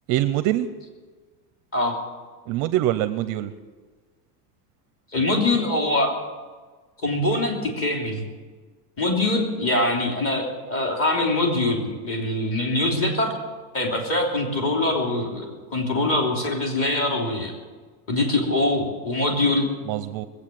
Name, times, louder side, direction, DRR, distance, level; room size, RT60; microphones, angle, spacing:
voice 1, 0.1-0.7 2.5-3.5 19.9-20.3, right 13 dB, 40° right, 12 dB, 0.6 m, -24 dB
voice 2, 5.1-6.1 7.0-8.2 9.0-13.3 13.7-17.5 18.1-19.7, left 2 dB, 30° left, 1 dB, 3.1 m, -23 dB
20.5 x 8.4 x 7.5 m, 1.4 s
supercardioid pair, 155°, 46 cm